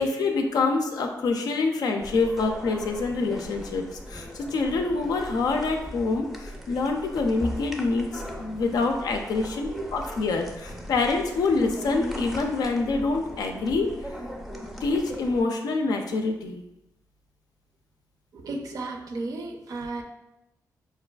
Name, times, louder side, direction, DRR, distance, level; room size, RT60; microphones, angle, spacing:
voice 1, 0.0-13.9 14.8-16.6, left 3 dB, 80° left, 3 dB, 0.4 m, -26 dB
sound 1, 2.0-15.4, equal, ahead, 0.4 m, -39 dB
voice 2, 18.3-20.0, right 3 dB, 65° right, 3 dB, 0.4 m, -34 dB
4.6 x 2.4 x 2.2 m, 0.91 s
cardioid pair, 105°, 7 cm